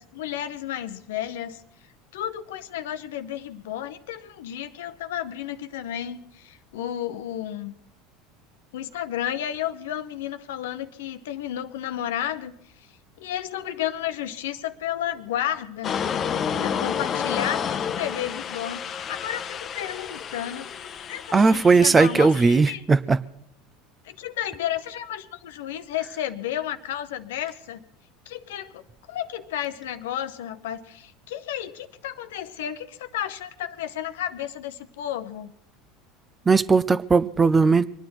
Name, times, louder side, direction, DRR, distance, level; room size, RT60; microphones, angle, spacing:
voice 1, 0.0-1.6 2.1-7.7 8.7-12.5 13.2-15.9 16.5-20.7 21.1-22.8 24.0-27.9 28.3-28.8 29.1-35.5, left 11 dB, 75° left, 11 dB, 0.8 m, -32 dB
sound 1, 15.8-22.6, left 7 dB, 40° left, 0.8 m, -30 dB
voice 2, 21.3-23.2 36.5-37.9, right 4 dB, 25° right, 16 dB, 0.6 m, -18 dB
23.5 x 9.8 x 6.0 m, 0.75 s
hypercardioid pair, 80°, 0 cm